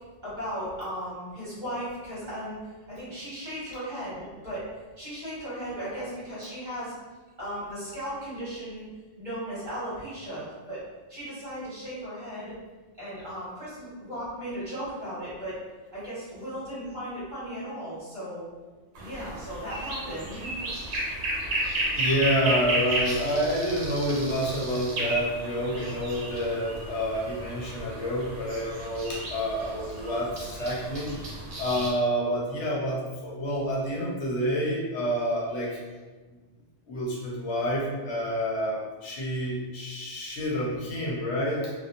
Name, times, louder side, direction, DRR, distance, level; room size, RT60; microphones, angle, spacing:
voice 1, 0.2-2.6 2.9-4.6 5.0-6.9 7.4-8.9 9.2-10.8 11.1-12.5 13.0-15.5 15.9-18.5 19.0-20.7, equal, 40° right, -11 dB, 1.4 m, -36 dB
sound 1, 19.0-31.9, right 1 dB, 65° right, 0.9 m, -33 dB
voice 2, 22.0-31.1 31.6-35.8 36.9-41.7, equal, 75° left, -3 dB, 0.9 m, -28 dB
2.6 x 2.3 x 2.5 m, 1.3 s
omnidirectional pair, 1.2 m